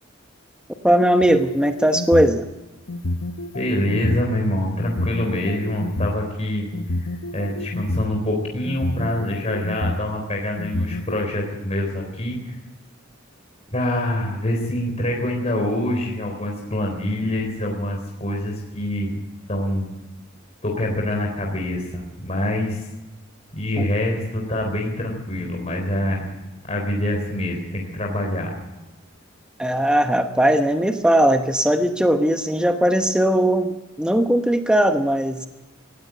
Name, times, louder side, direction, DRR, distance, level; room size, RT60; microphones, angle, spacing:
voice 1, 0.8-2.4 29.6-35.5, right 1 dB, 5° right, 6 dB, 0.9 m, -19 dB
sound 1, 1.2-2.4 2.9-4.2 4.8-6.1 6.7-8.1 8.7-10.0 10.6-11.2, left 2 dB, 65° left, 1.0 m, -28 dB
voice 2, 3.5-6.7 7.0-7.1 7.3-12.5 13.7-19.2 19.5-19.9 20.6-22.8 23.5-26.3 26.7-28.5, left 1 dB, 35° left, 0 dB, 3.8 m, -25 dB
18.5 x 16.0 x 9.1 m, 1.1 s
head